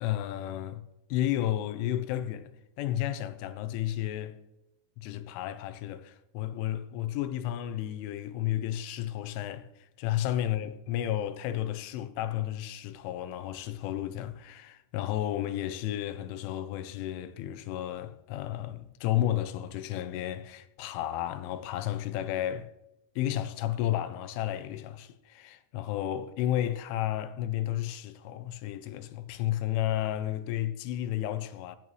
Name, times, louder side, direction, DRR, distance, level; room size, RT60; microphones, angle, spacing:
voice 1, 0.0-0.8 1.1-2.5 2.8-4.4 5.0-22.7 23.2-31.8, left 12 dB, 85° left, 3.1 m, -32 dB
16.5 x 10.5 x 3.2 m
omnidirectional pair, 5.7 m